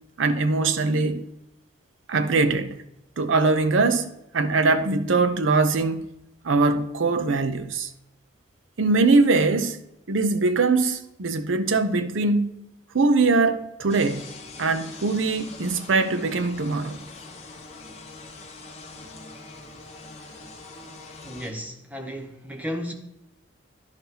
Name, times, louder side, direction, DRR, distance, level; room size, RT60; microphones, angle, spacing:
voice 1, 0.2-1.3 2.1-2.8 3.2-6.0 6.4-7.9 8.8-9.8 10.1-12.6 12.9-17.0, right 3 dB, 80° right, 0.6 m, -22 dB
sound 1, 13.9-21.5, left 3 dB, 35° left, 0.9 m, -43 dB
voice 2, 21.2-22.9, equal, 10° right, 0.8 m, -34 dB
10.5 x 5.5 x 2.8 m
head